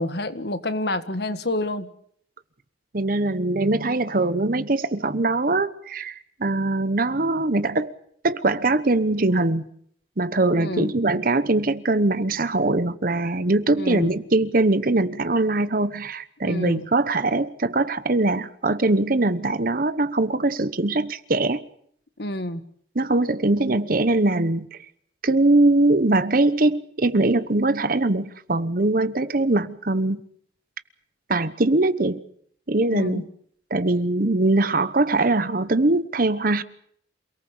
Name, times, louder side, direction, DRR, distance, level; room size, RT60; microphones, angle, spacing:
voice 1, 0.0-1.9 10.5-10.9 13.7-14.2 16.4-16.9 22.2-22.6 32.9-33.2, left 1 dB, 60° left, 1.7 m, -28 dB
voice 2, 2.9-7.9 8.2-9.7 10.2-21.6 22.9-24.8 25.2-30.2 31.3-32.2 32.7-33.2 33.7-36.6, right 2 dB, 50° right, 1.0 m, -22 dB
28.0 x 18.5 x 7.2 m
head